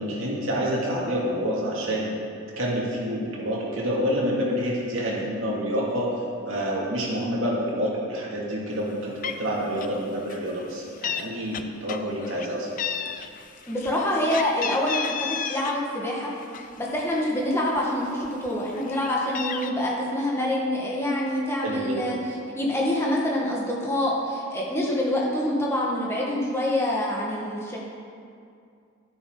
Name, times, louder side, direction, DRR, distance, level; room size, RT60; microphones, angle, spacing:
voice 1, 0.0-2.1 2.6-12.7 21.6-22.2, equal, 75° right, -5 dB, 2.5 m, -28 dB
Meow, 8.9-9.0 9.2-9.5 9.8-10.0 10.3-11.2 11.5-12.5 12.8-15.8 16.2-17.3 17.8-17.9 18.2-19.7, left 7 dB, 40° left, 0.4 m, -33 dB
voice 2, 13.7-16.3 16.8-22.2 22.6-27.8, left 1 dB, 10° left, -4 dB, 1.7 m, -26 dB
12.0 x 10.0 x 3.9 m, 2.4 s
head